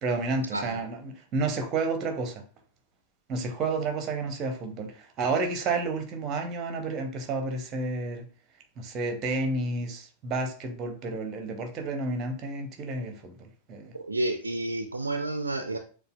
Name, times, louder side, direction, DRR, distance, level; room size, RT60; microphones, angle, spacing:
voice 1, 0.0-2.4 3.3-8.3 8.8-14.0, right 3 dB, 30° right, 0.8 m, -31 dB
voice 2, 13.9-15.8, right 2 dB, 80° right, 0.4 m, -30 dB
6.6 x 2.3 x 2.2 m
figure-of-eight pair, 90°, 0 cm